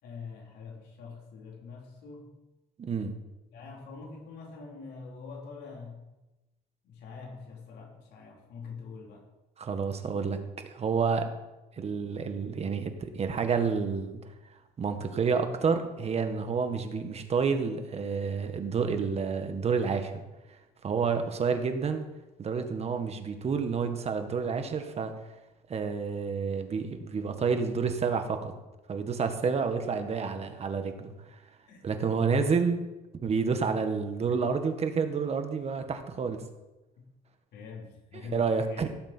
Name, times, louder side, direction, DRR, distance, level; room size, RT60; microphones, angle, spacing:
voice 1, 0.0-2.3 3.5-6.1 6.8-9.3 31.7-31.8 32.2-32.4 37.5-38.9, left 5 dB, 75° left, -1 dB, 3.8 m, -44 dB
voice 2, 2.8-3.1 9.6-11.3 11.8-14.2 14.8-20.2 20.8-22.0 22.4-25.1 25.7-28.5 28.9-31.1 31.8-32.8 33.2-36.4 38.1-38.9, right 5 dB, 40° right, 7 dB, 1.5 m, -29 dB
17.5 x 7.5 x 4.5 m, 1.0 s
cardioid pair, 110°, 17 cm